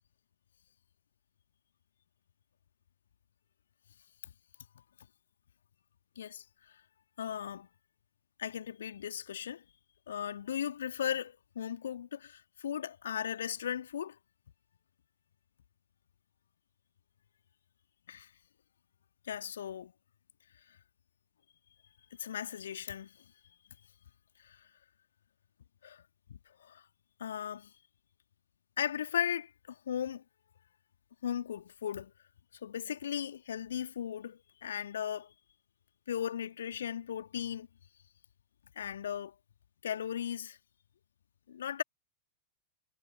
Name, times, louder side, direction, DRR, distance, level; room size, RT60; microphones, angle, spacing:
voice 1, 7.2-7.7 8.4-9.6 10.1-14.2 18.1-18.3 19.3-19.9 22.2-23.1 24.4-24.6 25.8-26.0 26.6-26.8 27.2-27.7 28.8-30.2 31.2-32.1 32.6-35.3 36.1-37.7 38.8-39.3 39.8-40.6 41.5-41.8, left 9 dB, 65° left, 2.8 m, -37 dB
figure-of-eight pair, 90°, 0 cm